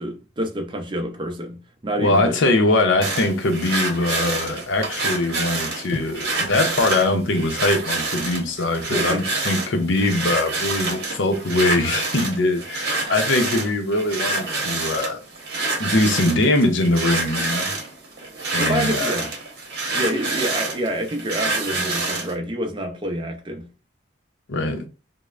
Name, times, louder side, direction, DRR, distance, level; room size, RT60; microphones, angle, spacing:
voice 1, 0.0-2.4 8.9-9.2 18.6-19.3 19.9-23.7, right 1 dB, 25° right, 0.4 m, -27 dB
voice 2, 2.0-15.2 15.8-17.7 18.5-19.2 24.5-24.9, left 2 dB, 75° left, 0.6 m, -22 dB
sound 1, 3.0-22.3, right 2 dB, 55° right, 0.8 m, -27 dB
3.1 x 2.0 x 2.4 m
head